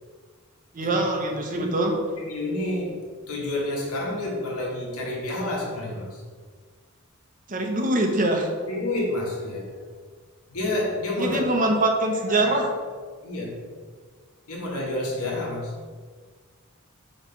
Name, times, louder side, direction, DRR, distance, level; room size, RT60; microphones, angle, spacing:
voice 1, 0.7-2.0 7.5-8.5 11.2-12.7, right 2 dB, 40° right, 2 dB, 0.9 m, -23 dB
voice 2, 2.2-3.0 3.3-6.2 8.6-9.8 10.5-11.5 12.2-12.5 13.2-13.6 14.5-15.7, left 1 dB, 90° left, -2 dB, 1.6 m, -29 dB
5.9 x 3.3 x 5.7 m, 1.5 s
head